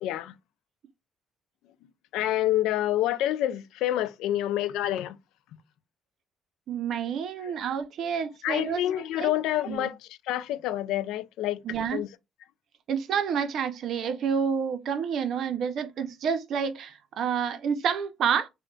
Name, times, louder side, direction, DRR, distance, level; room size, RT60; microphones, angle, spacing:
voice 1, 0.0-0.3 2.1-5.2 8.4-11.6 11.9-12.1, left 13 dB, 85° left, 0.3 m, -27 dB
voice 2, 6.7-8.8 9.2-9.3 9.7-9.9 11.6-12.0 12.9-18.5, right 7 dB, 65° right, 0.5 m, -29 dB
3.7 x 2.1 x 2.3 m
cardioid pair, 90°, 0 cm